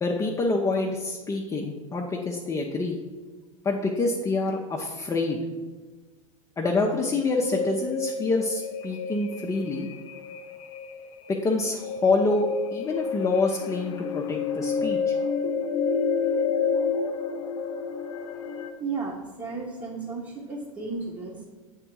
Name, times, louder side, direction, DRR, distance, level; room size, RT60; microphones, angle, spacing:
voice 1, 0.0-3.0 3.6-5.4 6.6-9.9 11.3-12.5 12.7-15.1, left 3 dB, 20° left, -1 dB, 0.7 m, -26 dB
sound 1, 7.3-18.7, left 5 dB, 65° left, 0.6 m, -30 dB
voice 2, 18.8-21.4, right 4 dB, 25° right, -3 dB, 1.2 m, -34 dB
7.7 x 3.7 x 4.6 m, 1.3 s
hypercardioid pair, 90°, 18 cm